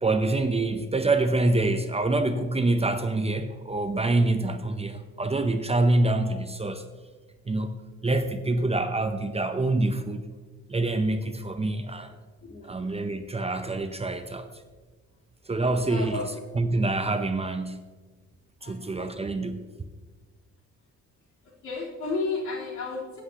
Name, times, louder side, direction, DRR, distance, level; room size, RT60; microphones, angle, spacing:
voice 1, 0.0-6.9 7.5-10.2 10.7-12.2 12.6-14.5 15.5-16.2 16.5-17.9 18.6-19.7, right 2 dB, 20° right, 8 dB, 0.7 m, -26 dB
voice 2, 12.4-12.9 15.6-16.3 18.6-19.2 21.6-23.2, left 3 dB, 65° left, -5 dB, 3.7 m, -33 dB
15.5 x 8.3 x 2.9 m, 1.4 s
cardioid pair, 90°, 30 cm